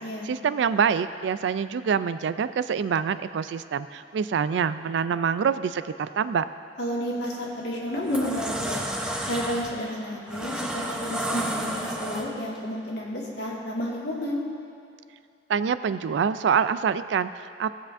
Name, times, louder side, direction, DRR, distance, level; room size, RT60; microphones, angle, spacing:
voice 1, 0.2-6.4 15.5-17.7, right 7 dB, 75° right, 13 dB, 0.3 m, -25 dB
voice 2, 6.8-8.8 9.3-14.4, equal, 65° left, -4 dB, 1.8 m, -31 dB
sound 1, 7.2-7.4 7.9-12.6, right 1 dB, 5° right, 0.8 m, -32 dB
17.5 x 7.3 x 2.6 m, 2.4 s
head